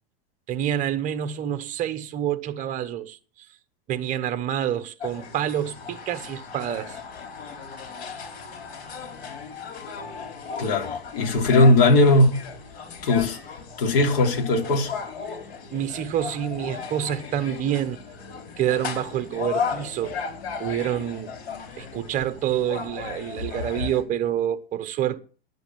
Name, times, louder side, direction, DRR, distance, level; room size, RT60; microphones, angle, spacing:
voice 1, 0.5-3.5 3.9-7.0 15.7-18.1 18.6-20.2 20.6-21.3 21.8-25.2, right 10 dB, 25° right, 1.0 m, -27 dB
sound 1, 5.0-24.0, left 6 dB, 85° left, 4.7 m, -35 dB
voice 2, 10.6-12.4 13.0-13.4 13.8-14.9, left 2 dB, 65° left, 3.4 m, -19 dB
10.5 x 8.1 x 7.4 m
supercardioid pair, 150°, 30 cm